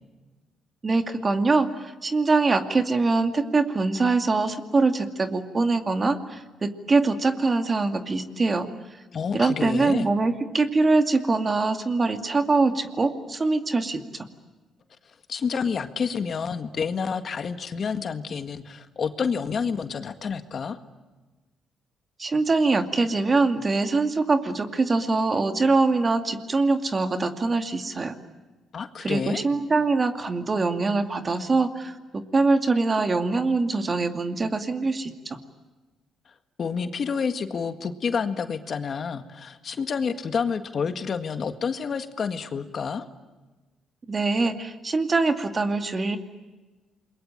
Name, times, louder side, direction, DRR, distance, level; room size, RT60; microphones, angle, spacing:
voice 1, 0.8-8.7 9.3-14.3 22.2-28.1 29.0-35.4 44.1-46.2, right 3 dB, 30° right, 7 dB, 2.4 m, -23 dB
voice 2, 9.1-10.1 15.3-20.8 28.7-29.4 36.6-43.1, left 6 dB, 50° left, 8 dB, 1.8 m, -29 dB
28.5 x 22.5 x 9.0 m, 1.2 s
cardioid pair, 90°, 0 cm